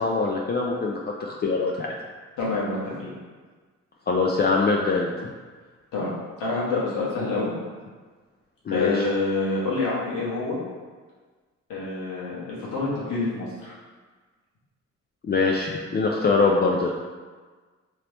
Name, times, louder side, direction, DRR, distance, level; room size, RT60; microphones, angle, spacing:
voice 1, 0.0-1.9 4.1-5.3 8.7-9.1 15.2-16.9, left 4 dB, 35° left, -1 dB, 0.4 m, -23 dB
voice 2, 2.4-3.1 5.9-6.1 6.4-7.6 8.7-10.6 11.7-13.8, left 3 dB, 90° left, -7 dB, 1.1 m, -27 dB
3.0 x 2.8 x 3.2 m, 1.4 s
supercardioid pair, 55°, 31 cm